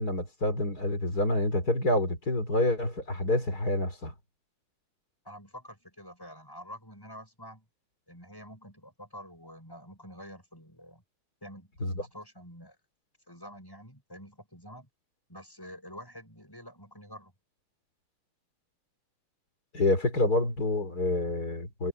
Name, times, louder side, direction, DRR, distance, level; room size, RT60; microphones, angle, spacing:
voice 1, 0.0-4.1 11.8-12.1 19.7-21.9, left 2 dB, 25° left, 4.2 m, -27 dB
voice 2, 5.2-7.7 8.1-11.0 11.4-12.8 13.3-14.9 15.3-17.3, equal, 5° left, 7.3 m, -47 dB
omnidirectional pair, 4.3 m